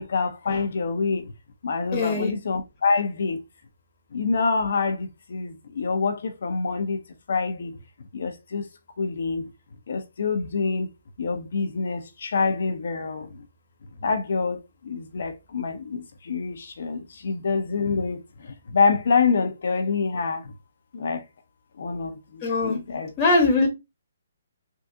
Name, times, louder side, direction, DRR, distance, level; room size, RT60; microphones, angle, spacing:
voice 1, 0.0-1.3 1.6-3.4 4.1-7.0 7.3-7.7 8.1-8.7 9.0-9.5 9.9-10.9 11.2-13.4 14.0-20.5 20.9-21.2 21.8-23.4, left 4 dB, 65° left, 0.7 m, -26 dB
voice 2, 1.9-2.3 22.4-22.8 23.2-23.7, left 3 dB, 25° left, 1.0 m, -21 dB
3.6 x 2.4 x 2.7 m
hypercardioid pair, 150°, 0 cm